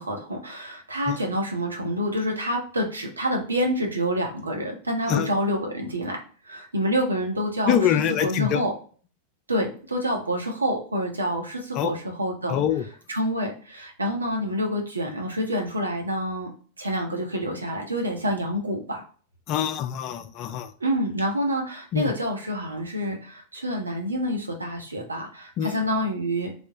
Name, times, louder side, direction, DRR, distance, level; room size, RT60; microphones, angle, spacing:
voice 1, 0.0-6.2 6.4-8.7 9.5-12.6 13.1-16.5 16.8-19.0 20.8-26.5, equal, 80° right, 2 dB, 0.7 m, -27 dB
voice 2, 7.7-8.6 11.8-11.9 12.5-12.9 19.5-20.7 21.9-22.1 25.6-25.8, left 9 dB, 40° left, 10 dB, 0.3 m, -24 dB
3.3 x 2.0 x 2.7 m, 0.42 s
figure-of-eight pair, 90°, 0 cm